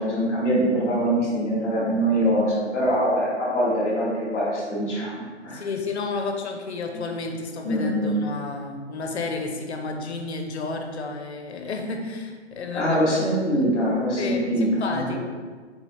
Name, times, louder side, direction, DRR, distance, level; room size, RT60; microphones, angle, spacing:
voice 1, 0.0-5.6 6.9-7.0 7.6-8.2 12.7-15.2, equal, ahead, -20 dB, 0.5 m, -23 dB
voice 2, 5.5-13.0 13.5-13.6 14.2-15.2, left 3 dB, 65° left, 4 dB, 0.7 m, -31 dB
4.1 x 4.0 x 3.0 m, 1.5 s
hypercardioid pair, 160°, 35 cm